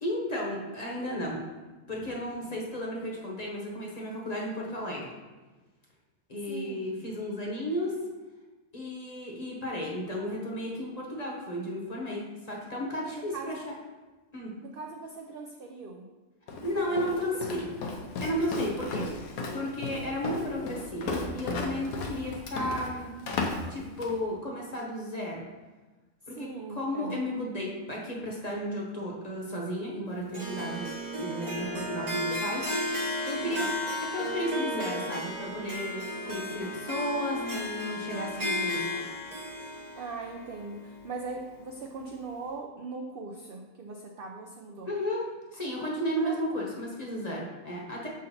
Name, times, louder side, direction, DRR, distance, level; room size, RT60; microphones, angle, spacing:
voice 1, 0.0-1.4 1.9-5.1 6.3-7.9 8.7-13.5 14.3-14.5 16.6-17.9 18.2-23.1 23.7-25.4 26.3-30.9 31.1-33.7 34.0-39.0 44.9-48.1, equal, 30° left, -2 dB, 0.9 m, -34 dB
voice 2, 6.5-6.8 13.0-13.8 14.6-16.1 16.7-17.1 26.3-27.2 33.4-33.7 40.0-44.9 46.2-46.4, right 3 dB, 75° right, 2 dB, 0.5 m, -40 dB
Walk footsteps, 16.5-24.2, left 3 dB, 80° left, 1.1 m, -35 dB
Harp, 30.3-41.6, left 1 dB, 35° right, 0.8 m, -34 dB
6.5 x 3.8 x 4.1 m, 1.2 s
omnidirectional pair, 1.5 m